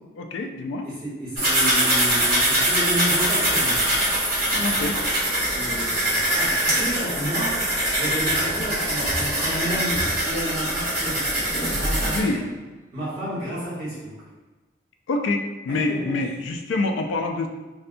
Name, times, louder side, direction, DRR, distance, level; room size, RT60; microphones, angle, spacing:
voice 1, 0.2-0.9 4.5-5.0 12.1-12.4 15.1-17.5, left 2 dB, 90° left, 4 dB, 0.3 m, -26 dB
voice 2, 0.8-3.8 5.5-7.6 7.9-12.4 12.9-14.1 15.7-16.3, right 1 dB, 25° right, -11 dB, 1.3 m, -31 dB
sound 1, 1.4-12.2, right 1 dB, 55° right, 1.2 m, -23 dB
sound 2, 8.9-10.7 11.6-12.5, equal, 85° right, 0.7 m, -32 dB
2.6 x 2.2 x 2.6 m, 1.2 s
head